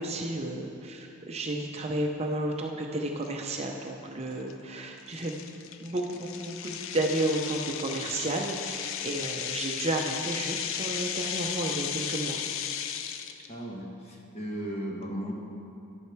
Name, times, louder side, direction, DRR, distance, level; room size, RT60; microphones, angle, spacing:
voice 1, 0.0-5.3 5.8-12.4, right 1 dB, 30° right, 1 dB, 0.6 m, -32 dB
sound 1, 3.2-3.3 3.9-4.1 4.5-4.6 5.1-13.5, left 8 dB, 60° left, 0.5 m, -35 dB
voice 2, 13.5-15.3, equal, 30° left, -1 dB, 1.3 m, -36 dB
11.5 x 8.6 x 4.6 m, 2.9 s
head